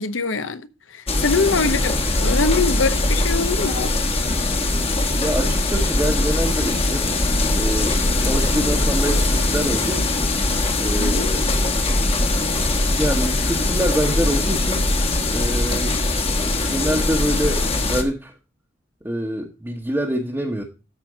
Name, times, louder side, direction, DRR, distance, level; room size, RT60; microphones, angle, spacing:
voice 1, 0.0-3.9 11.0-11.3, left 4 dB, 85° left, 0.8 m, -23 dB
sound 1, 1.1-18.0, left 2 dB, 30° left, 1.3 m, -21 dB
voice 2, 5.2-7.1 7.5-10.3 10.8-11.5 12.9-14.8 15.3-15.9 16.7-18.3 19.0-20.6, equal, 10° right, 1.0 m, -25 dB
13.0 x 4.4 x 4.7 m
head